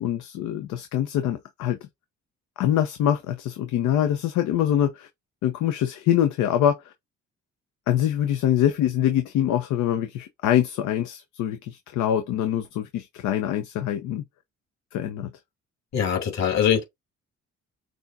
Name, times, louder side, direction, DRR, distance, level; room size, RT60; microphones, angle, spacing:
voice 1, 0.0-1.8 2.6-5.1 5.4-6.9 7.9-14.2 14.9-15.3, left 10 dB, 85° left, 0.7 m, -24 dB
voice 2, 15.9-16.8, left 8 dB, 65° left, 2.8 m, -22 dB
6.3 x 2.4 x 2.6 m
cardioid pair, 75°, 30 cm